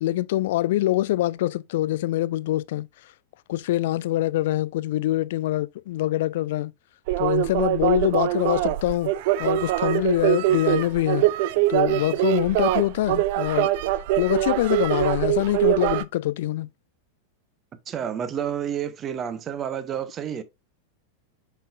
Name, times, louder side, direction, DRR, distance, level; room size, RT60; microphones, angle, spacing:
voice 1, 0.0-2.9 3.5-6.7 7.2-9.1 9.4-11.3 11.7-13.7 14.2-16.7, left 15 dB, 55° left, 0.3 m, -24 dB
sound 1, 7.1-16.0, right 15 dB, 50° right, 0.4 m, -23 dB
voice 2, 17.9-20.4, right 9 dB, 25° right, 0.8 m, -30 dB
7.2 x 5.4 x 2.5 m
figure-of-eight pair, 90°, 0 cm